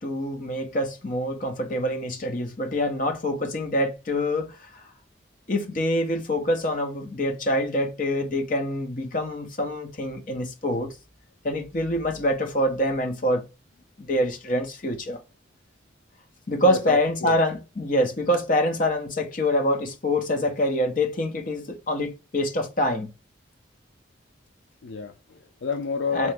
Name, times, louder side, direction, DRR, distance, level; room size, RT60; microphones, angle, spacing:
voice 1, 0.0-4.8 5.5-10.9 11.4-13.5 14.0-15.2 16.5-23.1 26.1-26.3, left 1 dB, 45° left, 0.8 m, -25 dB
voice 2, 16.6-17.4 24.8-26.3, left 5 dB, 70° left, 0.4 m, -30 dB
3.5 x 3.0 x 3.4 m
head